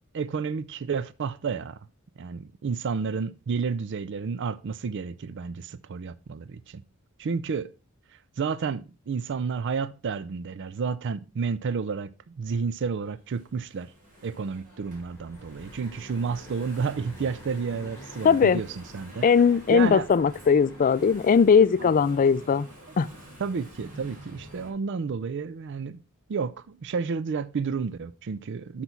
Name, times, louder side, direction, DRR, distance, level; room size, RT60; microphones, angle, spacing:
voice 1, 0.1-1.8 2.2-6.8 7.2-7.7 8.4-13.9 14.2-19.3 19.7-20.1 21.8-21.9 23.4-26.0 26.3-28.8, right 5 dB, 55° right, 0.4 m, -31 dB
Engine / Mechanisms, 12.5-24.7, equal, 40° right, 2.9 m, -49 dB
sound 1, 14.8-21.5, left 1 dB, 15° left, 2.5 m, -48 dB
voice 2, 18.2-18.6 19.2-22.7 23.0-23.1, left 6 dB, 40° left, 0.4 m, -19 dB
8.0 x 5.9 x 4.4 m
head